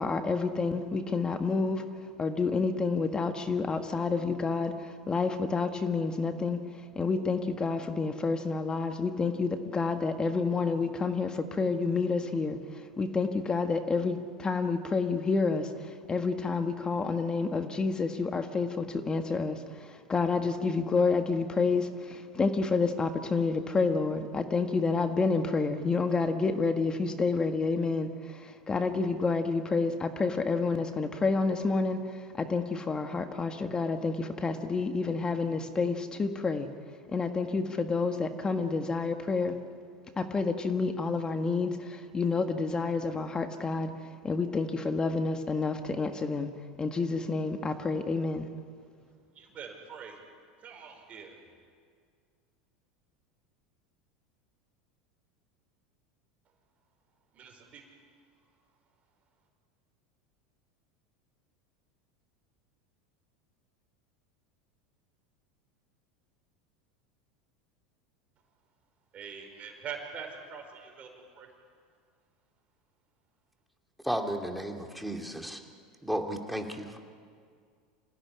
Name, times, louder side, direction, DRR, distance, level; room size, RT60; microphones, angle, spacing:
voice 1, 0.0-1.8 2.2-6.6 6.9-36.7 37.1-39.5 40.2-43.9 44.2-46.5 46.8-48.5, left 4 dB, 20° left, 7 dB, 1.7 m, -29 dB
voice 2, 49.3-50.2 50.6-51.4 57.3-57.9 69.1-71.5, right 6 dB, 40° right, 3 dB, 5.0 m, -43 dB
voice 3, 74.0-75.6 76.0-77.0, equal, ahead, 3 dB, 2.8 m, -33 dB
26.5 x 17.0 x 9.9 m, 2.1 s
hypercardioid pair, 95°, 4 cm